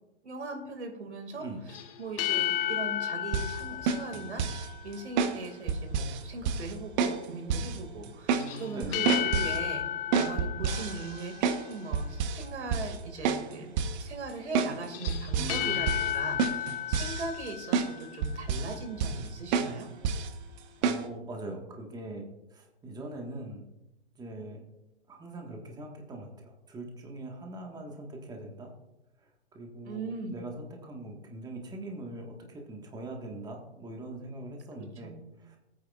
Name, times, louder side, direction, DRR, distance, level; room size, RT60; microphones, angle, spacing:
voice 1, 0.2-1.5 2.0-9.9 10.1-13.7 14.0-19.9 29.8-30.4 35.0-35.2, right 3 dB, 80° right, 5 dB, 2.3 m, -39 dB
sound 1, 1.7-5.0 8.4-11.7 14.8-18.4, left 11 dB, 55° left, 1.4 m, -33 dB
sound 2, 3.3-3.5 3.9-4.7 5.2-5.4 5.7-6.2 6.4-6.7 7.0-7.2 7.5-7.8 8.0-8.5 8.8-9.6 10.1-11.7 11.9-12.4 12.7-13.0 13.2-13.4 13.8-14.0 14.5-14.7 15.1-15.6 15.9-16.1 16.4-17.5 17.7-17.9 18.2-18.7 19.0-19.3 19.5-19.7 20.0-20.3 20.8-21.0, right 6 dB, 40° right, 1.0 m, -28 dB
voice 2, 8.3-9.1 15.4-15.9 20.8-23.6 24.2-24.6 25.1-28.7 29.2-35.6, right 2 dB, 10° right, 1 dB, 1.6 m, -42 dB
18.5 x 9.1 x 2.5 m, 0.93 s
hypercardioid pair, 130°, 33 cm